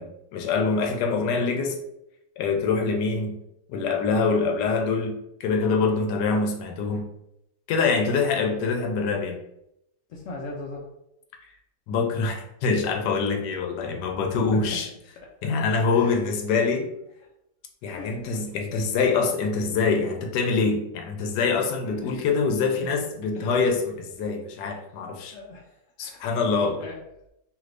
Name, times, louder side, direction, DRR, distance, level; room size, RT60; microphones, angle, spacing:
voice 1, 0.0-1.8 2.4-3.3 3.7-7.0 7.7-9.4 11.9-14.9 15.4-16.9 17.8-25.4 26.0-26.8, left 4 dB, 85° left, 3 dB, 1.2 m, -25 dB
voice 2, 8.0-9.0 10.1-10.9 14.5-14.8 15.4-15.5 15.9-16.3 17.9-18.3 21.8-22.2 22.8-22.9 23.3-23.7 25.3-26.3 26.6-27.0, left 2 dB, 70° left, -1 dB, 0.8 m, -39 dB
3.0 x 2.5 x 3.2 m, 0.83 s
omnidirectional pair, 1.8 m